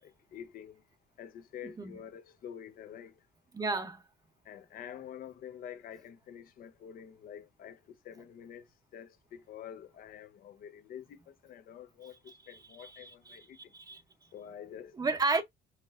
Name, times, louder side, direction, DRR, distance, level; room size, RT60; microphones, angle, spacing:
voice 1, 0.0-0.8 1.2-3.1 4.4-13.6 14.3-14.9, left 9 dB, 60° left, 0.7 m, -48 dB
voice 2, 3.5-4.0 12.5-14.0 15.0-15.4, right 3 dB, 20° right, 0.7 m, -33 dB
4.3 x 3.0 x 2.5 m
cardioid pair, 110°, 17 cm